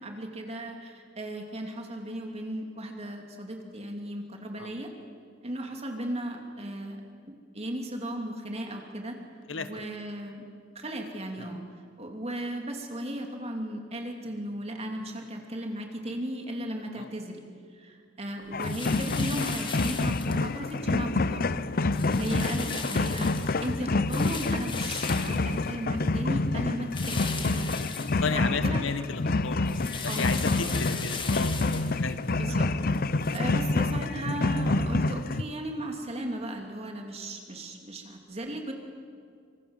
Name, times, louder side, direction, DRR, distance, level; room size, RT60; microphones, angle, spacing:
voice 1, 0.0-4.9 5.4-9.2 9.6-10.4 10.7-11.6 12.0-17.4 17.7-21.6 22.2-27.7 28.3-28.8 30.0-30.7 32.4-38.7, right 1 dB, 35° right, 2 dB, 2.9 m, -36 dB
voice 2, 9.5-9.9 11.4-11.5 16.9-17.1 21.8-22.0 26.9-27.0 28.2-32.6, left 4 dB, 90° left, 10 dB, 1.4 m, -34 dB
sound 1, 18.5-35.4, left 3 dB, 50° left, 0.7 m, -28 dB
sound 2, 18.6-20.8 21.2-21.6 21.9-26.2 26.9-28.8 29.1-33.4, left 5 dB, 25° left, 1.9 m, -39 dB
26.0 x 25.5 x 7.4 m, 2.2 s
head